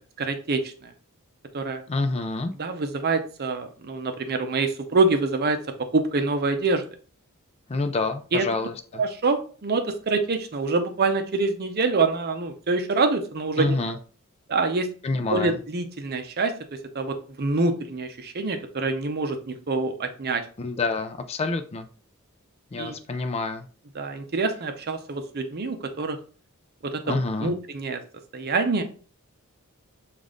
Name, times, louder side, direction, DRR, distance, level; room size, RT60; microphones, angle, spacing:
voice 1, 0.2-0.9 1.5-1.8 2.6-6.9 8.3-8.4 9.0-13.8 14.5-14.9 15.3-16.5 16.9-20.4 22.8-23.0 23.9-26.2 26.9-28.0 28.3-28.8, right 3 dB, 45° right, 7 dB, 0.6 m, -26 dB
voice 2, 1.9-2.5 7.7-9.0 13.6-14.0 15.0-15.6 20.6-21.9 22.7-23.7 27.0-27.5, left 3 dB, 30° left, 8 dB, 0.4 m, -27 dB
5.3 x 2.5 x 3.8 m, 0.40 s
head